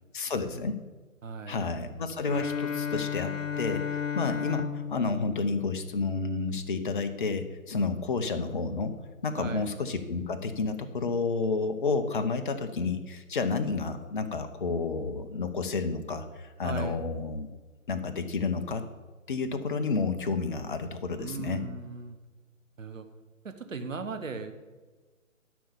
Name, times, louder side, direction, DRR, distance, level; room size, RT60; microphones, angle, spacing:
voice 1, 0.1-0.8 1.5-9.0 9.2-17.5 17.9-18.8 19.3-21.6, left 4 dB, 35° left, 9 dB, 0.8 m, -30 dB
voice 2, 1.2-1.7 9.4-9.7 16.6-17.0 21.2-22.2 22.8-23.1 23.4-24.5, right 4 dB, 65° right, 8 dB, 1.3 m, -38 dB
Bowed string instrument, 2.2-6.5, left 7 dB, 65° left, 1.1 m, -34 dB
12.0 x 5.4 x 7.0 m, 1.3 s
figure-of-eight pair, 145°, 42 cm